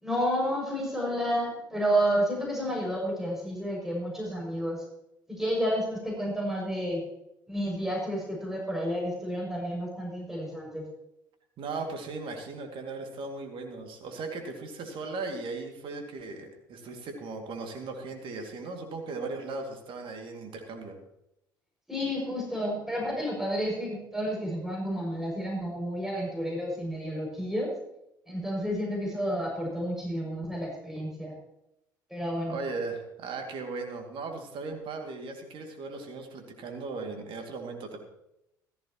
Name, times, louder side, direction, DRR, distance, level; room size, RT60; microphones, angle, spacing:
voice 1, 0.0-4.8 5.3-7.0 7.5-10.9 21.9-27.7 28.3-31.3 32.1-32.6, equal, 5° right, -2 dB, 6.5 m, -30 dB
voice 2, 11.6-21.0 32.4-38.0, right 3 dB, 50° right, 4 dB, 2.4 m, -37 dB
16.0 x 14.5 x 3.0 m, 0.83 s
figure-of-eight pair, 55°, 11 cm